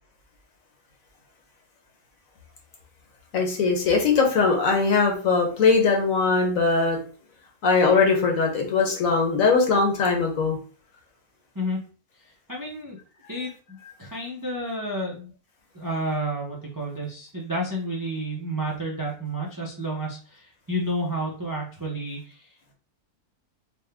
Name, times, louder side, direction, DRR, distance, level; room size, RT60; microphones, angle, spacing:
voice 1, 3.3-7.0 7.6-10.6, left 4 dB, 65° left, 2 dB, 1.3 m, -21 dB
voice 2, 12.2-13.0 13.3-15.3 15.7-22.7, right 1 dB, 30° right, -3 dB, 0.4 m, -31 dB
4.3 x 2.1 x 3.4 m, 0.39 s
omnidirectional pair, 1.6 m